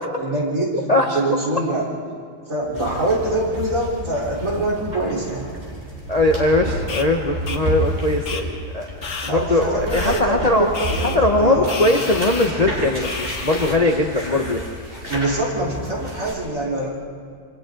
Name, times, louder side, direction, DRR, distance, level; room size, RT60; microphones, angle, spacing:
voice 1, 0.0-0.8 1.1-1.9 2.4-5.6 9.2-12.0 14.9-16.9, right 2 dB, 50° right, -5 dB, 4.4 m, -24 dB
Fire, 2.4-7.0, left 1 dB, 60° left, 7.8 m, -41 dB
sound 1, 2.7-16.3, right 1 dB, 35° right, 5.5 m, -31 dB
voice 2, 6.1-8.9 9.3-10.7 11.1-14.6, left 2 dB, 30° left, 2 dB, 0.9 m, -20 dB
sound 2, 6.9-7.0 7.5-7.6 8.2-8.4 9.0-9.3 9.9-10.2 10.7-11.2 11.7-12.5 13.0-13.7, left 4 dB, 80° left, 2.1 m, -30 dB
27.5 x 25.0 x 3.9 m, 2.2 s
omnidirectional pair, 1.8 m